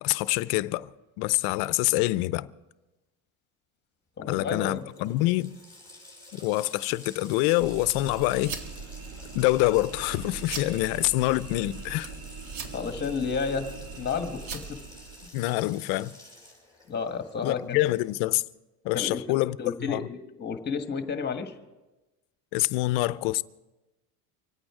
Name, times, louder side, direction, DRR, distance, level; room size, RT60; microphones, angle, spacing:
voice 1, 0.0-0.9 1.2-2.5 4.3-5.5 6.3-8.5 9.3-12.1 15.3-16.2 17.4-18.4 18.8-20.1 22.5-23.4, left 18 dB, 60° left, 0.6 m, -26 dB
voice 2, 4.2-4.9 12.7-14.6 16.9-17.8 18.9-21.5, left 5 dB, 25° left, 1.5 m, -31 dB
Water tap faucet, 4.2-4.3 4.5-18.3, left 1 dB, 10° right, 4.7 m, -50 dB
sound 1, 7.6-15.3, right 5 dB, 70° right, 2.1 m, -40 dB
25.5 x 8.9 x 4.9 m
supercardioid pair, 135°, 44 cm